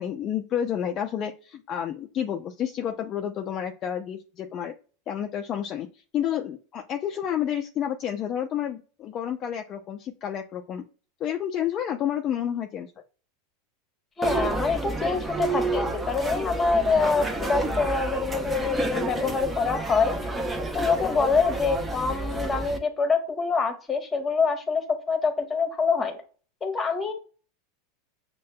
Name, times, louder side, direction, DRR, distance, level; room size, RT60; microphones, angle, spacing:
voice 1, 0.0-4.7 5.1-5.9 6.1-10.8 11.2-12.9, left 9 dB, 40° left, 3 dB, 0.4 m, -30 dB
voice 2, 14.2-20.3 20.7-26.2 26.6-27.1, left 4 dB, 20° left, 5 dB, 1.1 m, -25 dB
sound 1, 14.2-22.8, right 2 dB, 15° right, 0.7 m, -30 dB
6.3 x 2.2 x 2.2 m, 0.38 s
hypercardioid pair, 100°, 0 cm